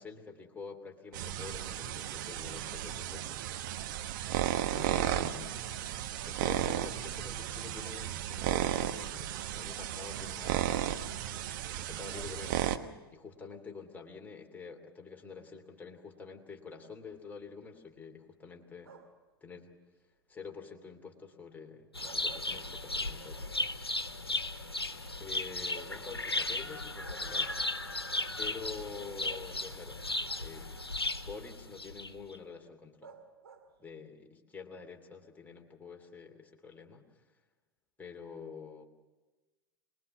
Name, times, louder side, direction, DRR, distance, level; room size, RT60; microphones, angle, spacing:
voice 1, 0.0-3.4 4.7-5.6 6.3-11.2 11.8-12.8 13.1-19.0 19.4-19.7 20.3-23.4 25.2-27.5 28.4-30.7 31.2-33.2 33.8-37.2 38.0-38.9, left 5 dB, 15° left, 1 dB, 2.8 m, -47 dB
sound 1, 1.1-12.8, right 11 dB, 55° right, 1.2 m, -34 dB
sound 2, 18.8-19.3 21.8-23.2 23.6-23.7 25.2-25.3 25.7-26.9 27.9-28.0 29.3-30.0 33.0-33.9, right 5 dB, 75° right, 2.3 m, -54 dB
sound 3, 21.9-32.4, left 2 dB, 90° left, 1.1 m, -36 dB
24.0 x 20.5 x 7.1 m, 1.2 s
figure-of-eight pair, 90°, 13 cm